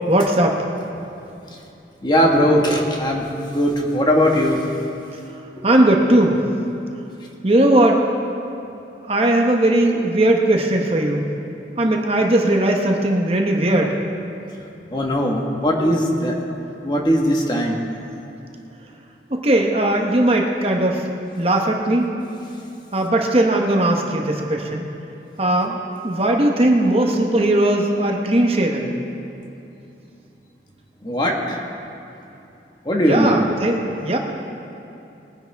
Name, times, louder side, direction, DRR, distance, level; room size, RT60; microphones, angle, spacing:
voice 1, 0.1-0.6 5.6-6.4 7.4-8.0 9.1-11.3 11.8-13.9 19.3-21.1 21.4-22.1 22.9-24.9 25.4-25.8 26.0-28.9 33.0-34.2, right 1 dB, 35° right, 2 dB, 0.9 m, -18 dB
voice 2, 2.0-3.3 3.5-4.6 5.6-5.7 14.9-16.4 16.8-17.8 31.0-31.6 32.8-33.4, equal, 25° left, 0 dB, 1.4 m, -19 dB
21.0 x 10.5 x 3.4 m, 2.8 s
head